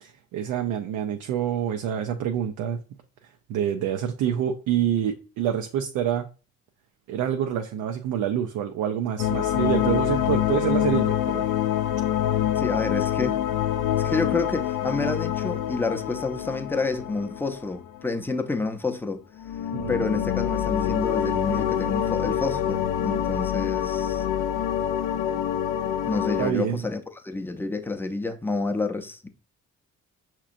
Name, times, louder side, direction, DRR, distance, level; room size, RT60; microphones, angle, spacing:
voice 1, 0.0-2.8 3.5-6.3 7.1-11.4 19.7-20.0 26.4-26.9, right 9 dB, 85° right, 0.5 m, -27 dB
sound 1, 9.2-18.2 19.4-26.5, left 10 dB, 85° left, 0.5 m, -26 dB
voice 2, 12.6-13.4 14.0-19.2 19.9-24.2 26.1-29.3, left 3 dB, 5° left, 0.5 m, -29 dB
5.9 x 2.9 x 2.5 m
cardioid pair, 90°, 30 cm